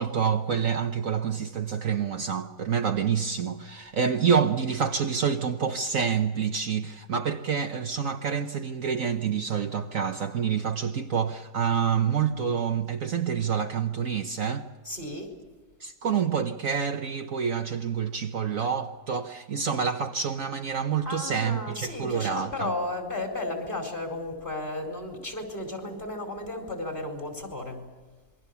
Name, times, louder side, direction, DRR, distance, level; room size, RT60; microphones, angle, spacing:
voice 1, 0.0-14.6 15.8-22.7, right 7 dB, 55° right, 1.3 m, -27 dB
voice 2, 14.8-15.4 21.0-27.8, left 2 dB, 30° left, 4.7 m, -34 dB
27.5 x 22.5 x 7.0 m
omnidirectional pair, 1.8 m